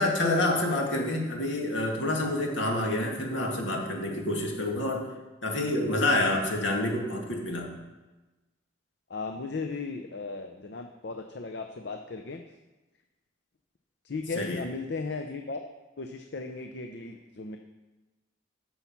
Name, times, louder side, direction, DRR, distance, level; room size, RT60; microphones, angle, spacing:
voice 1, 0.0-5.0 5.4-7.7 14.4-14.6, left 1 dB, 75° left, 0 dB, 2.0 m, -28 dB
voice 2, 9.1-12.4 14.0-15.6 16.0-17.6, left 3 dB, 60° left, 5 dB, 0.6 m, -36 dB
11.0 x 7.2 x 5.9 m, 1.2 s
head